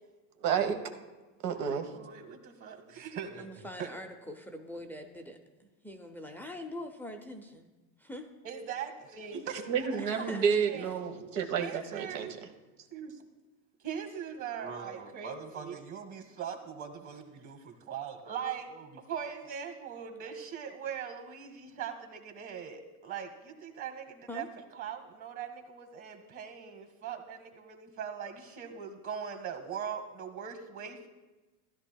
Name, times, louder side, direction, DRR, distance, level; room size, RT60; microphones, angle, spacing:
voice 1, 0.4-0.8 1.4-1.9 9.3-12.3, right 7 dB, 85° right, 6 dB, 1.3 m, -30 dB
voice 2, 1.7-3.5 3.8-3.9 8.4-10.3 10.7-10.9 11.5-12.3 12.9-13.2 13.8-24.4 24.8-31.1, right 7 dB, 35° right, 6 dB, 1.7 m, -41 dB
voice 3, 3.4-7.7 8.0-8.3 10.0-10.4 24.3-24.5, left 1 dB, 5° left, 4 dB, 0.4 m, -43 dB
16.0 x 11.5 x 2.2 m, 1.2 s
supercardioid pair, 115°, 49 cm